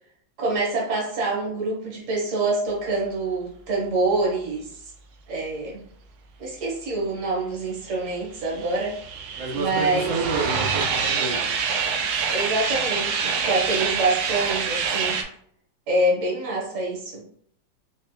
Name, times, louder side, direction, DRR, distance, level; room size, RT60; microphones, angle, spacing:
voice 1, 0.4-4.7 5.3-5.8 6.4-9.0 9.5-10.1 12.3-15.2 15.9-17.2, right 2 dB, 45° right, -3 dB, 1.5 m, -26 dB
sound 1, 8.1-15.2, right 5 dB, 70° right, 1.0 m, -26 dB
voice 2, 9.4-11.4, right 4 dB, 90° right, -3 dB, 2.0 m, -28 dB
4.2 x 3.3 x 2.3 m, 0.63 s
omnidirectional pair, 2.2 m